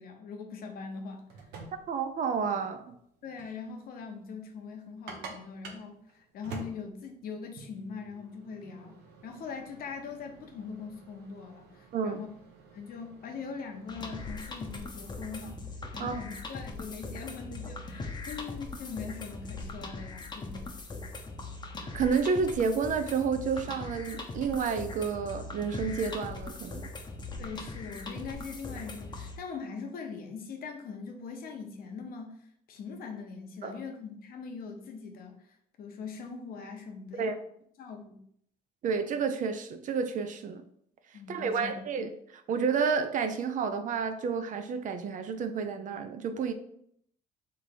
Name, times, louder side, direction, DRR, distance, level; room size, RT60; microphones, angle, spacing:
voice 1, 0.0-1.4 3.2-12.3 12.7-15.6 15.9-20.7 27.4-37.4 37.8-38.2 41.1-41.8, left 5 dB, 60° left, 4 dB, 0.9 m, -42 dB
sound 1, 1.1-15.5, right 4 dB, 85° right, 0.9 m, -50 dB
voice 2, 1.9-2.9 11.9-12.2 16.0-16.2 21.9-26.9 33.6-33.8 37.2-37.3 38.8-40.6 41.3-46.5, right 5 dB, 50° right, 8 dB, 0.5 m, -30 dB
sound 2, 13.9-29.4, left 3 dB, 25° left, 0.8 m, -40 dB
3.3 x 3.3 x 4.1 m, 0.68 s
cardioid pair, 110°, 17 cm